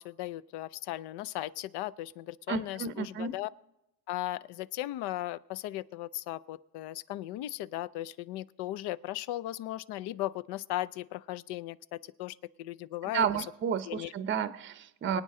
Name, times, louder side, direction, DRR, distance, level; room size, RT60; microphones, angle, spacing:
voice 1, 0.0-3.5 4.1-13.3 13.9-14.1, left 15 dB, 65° left, 19 dB, 0.6 m, -37 dB
voice 2, 2.5-3.3 13.1-15.2, right 7 dB, 25° right, 13 dB, 0.6 m, -31 dB
23.0 x 9.1 x 3.7 m, 0.89 s
cardioid pair, 115°, 43 cm